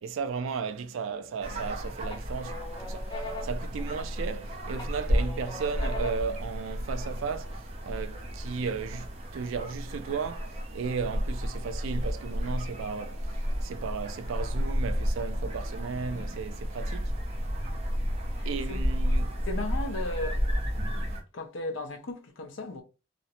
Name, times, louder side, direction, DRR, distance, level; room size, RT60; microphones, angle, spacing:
voice 1, 0.0-13.4 13.6-17.1 18.5-19.4, right 5 dB, 75° right, 0.3 m, -35 dB
sound 1, 1.1-1.7 2.1-4.4 4.8-6.4, left 2 dB, 25° left, 0.5 m, -41 dB
sound 2, 1.4-21.2, equal, 30° right, 0.6 m, -32 dB
voice 2, 18.3-18.8 19.5-20.6 21.3-22.8, left 2 dB, 70° left, 0.6 m, -36 dB
2.4 x 2.0 x 2.8 m
head